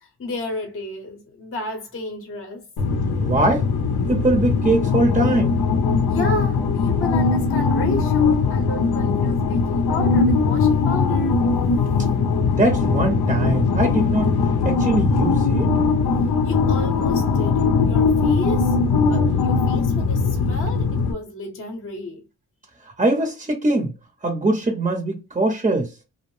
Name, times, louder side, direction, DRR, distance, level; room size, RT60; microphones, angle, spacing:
voice 1, 0.0-2.7 6.1-11.4 11.8-12.1 16.4-22.2, left 2 dB, 35° left, 0.7 m, -32 dB
sound 1, 2.8-21.1, left 4 dB, 75° left, 0.6 m, -20 dB
voice 2, 3.2-3.7 4.0-5.6 12.6-14.3 14.6-15.7 22.8-23.9 24.2-25.9, right 2 dB, 20° right, 0.6 m, -22 dB
2.6 x 2.0 x 3.0 m
wide cardioid pair, 110°, 38 cm